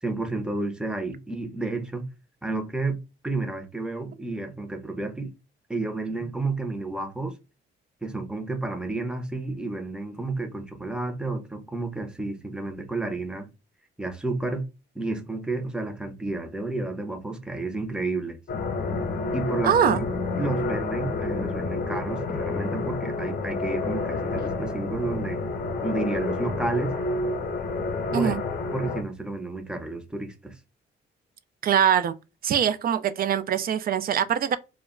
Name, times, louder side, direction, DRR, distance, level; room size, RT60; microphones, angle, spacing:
voice 1, 0.0-2.1 2.4-5.3 5.7-7.4 8.0-13.5 14.0-14.7 14.9-18.4 19.3-20.0 20.4-25.4 25.8-27.0 28.1-28.3 28.7-30.6, right 3 dB, 5° right, 0.6 m, -31 dB
sound 1, 18.5-29.0, left 3 dB, 55° left, 0.8 m, -29 dB
voice 2, 19.6-20.0 28.1-28.4 31.6-32.1 32.4-34.6, right 9 dB, 50° right, 0.4 m, -23 dB
2.1 x 2.1 x 3.6 m
cardioid pair, 90°, 20 cm